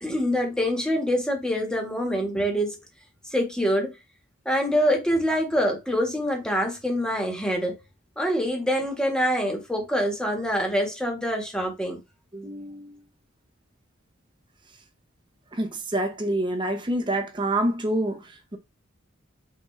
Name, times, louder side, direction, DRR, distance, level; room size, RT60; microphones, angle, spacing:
voice 1, 0.0-2.8 3.3-3.9 4.4-7.8 8.2-12.0, equal, 5° left, 1.3 m, -25 dB
voice 2, 12.3-13.0 15.5-18.6, right 1 dB, 25° right, 0.8 m, -27 dB
5.9 x 2.6 x 3.2 m
head